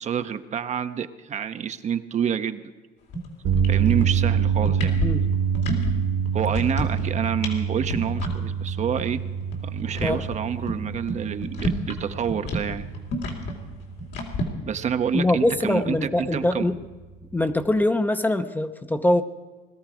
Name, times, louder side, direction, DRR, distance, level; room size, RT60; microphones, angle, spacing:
voice 1, 0.0-2.6 3.7-5.0 6.3-9.2 9.6-12.9 14.7-16.7, right 7 dB, 45° right, 9 dB, 0.8 m, -28 dB
sound 1, 3.1-3.3 3.5-4.3 4.6-5.9 6.3-7.1 7.4-7.6 7.8-8.3 8.7-8.8 9.0-9.1 9.4-12.0 12.3-14.4, left 1 dB, 80° left, 2.9 m, -29 dB
sound 2, 3.4-17.7, right 7 dB, 80° right, 2.2 m, -27 dB
voice 2, 15.1-16.8 17.3-19.2, left 1 dB, 10° left, 9 dB, 0.7 m, -23 dB
20.5 x 13.0 x 4.9 m, 1.3 s
cardioid pair, 110°, 17 cm